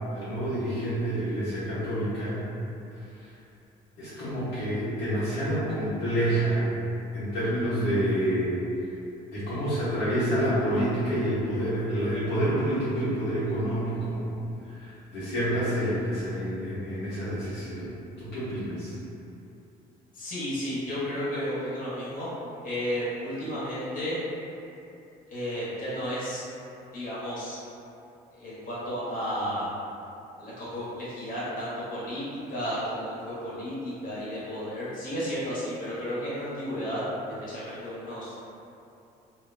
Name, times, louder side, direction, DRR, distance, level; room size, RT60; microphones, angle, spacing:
voice 1, 0.1-2.4 4.0-6.7 7.1-8.5 9.3-14.2 14.8-17.9 18.2-18.9, right 1 dB, 85° left, -12 dB, 0.9 m, -28 dB
voice 2, 20.1-22.3 22.6-24.2 25.3-26.4 26.9-27.6 28.4-29.7 30.4-37.0 37.4-38.3, equal, 55° left, -10 dB, 1.0 m, -33 dB
2.6 x 2.1 x 2.5 m, 2.8 s
cardioid pair, 110°, 17 cm